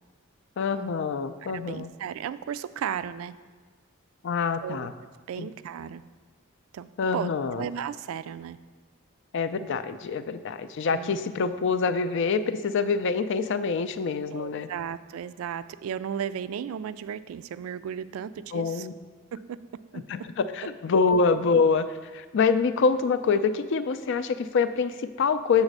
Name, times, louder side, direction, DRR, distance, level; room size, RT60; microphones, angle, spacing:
voice 1, 0.6-1.9 4.2-4.9 5.4-5.5 7.0-7.6 9.3-14.7 18.5-18.9 20.1-25.6, left 5 dB, 60° left, 11 dB, 0.4 m, -25 dB
voice 2, 1.4-3.3 4.6-4.9 5.3-6.0 6.7-7.3 7.6-8.6 10.9-11.2 14.3-18.9 19.3-19.6 19.9-20.0, right 8 dB, 80° right, 15 dB, 0.3 m, -35 dB
7.1 x 4.0 x 6.5 m, 1.5 s
head